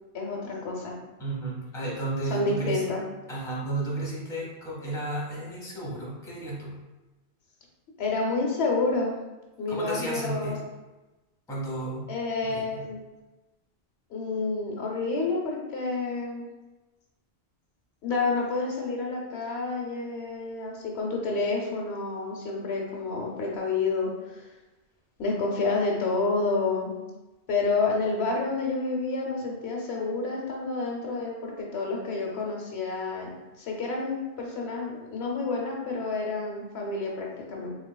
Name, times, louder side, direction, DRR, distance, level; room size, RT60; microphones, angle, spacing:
voice 1, 0.1-0.9 2.3-3.0 8.0-9.1 9.6-10.6 12.1-13.0 14.1-16.5 18.0-24.4 25.2-26.9 27.5-37.7, left 3 dB, 75° left, -1 dB, 0.9 m, -29 dB
voice 2, 1.2-2.8 3.3-6.8 9.7-10.6 11.5-12.1 12.5-12.9, right 2 dB, 5° left, -5 dB, 0.7 m, -33 dB
3.4 x 3.1 x 2.2 m, 1.1 s
omnidirectional pair, 1.1 m